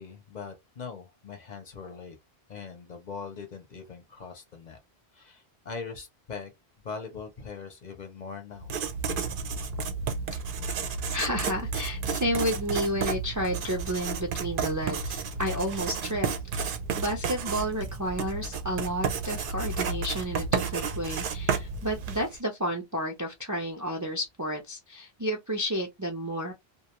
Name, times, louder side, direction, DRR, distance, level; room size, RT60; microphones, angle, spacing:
voice 1, 0.0-2.2 2.5-4.8 5.1-6.5 6.8-8.7, left 5 dB, 50° left, 0.7 m, -41 dB
Writing, 8.6-22.4, right 5 dB, 60° right, 0.7 m, -32 dB
voice 2, 11.1-16.3 16.5-26.5, equal, 30° right, 0.3 m, -31 dB
2.4 x 2.2 x 2.9 m
omnidirectional pair, 1.1 m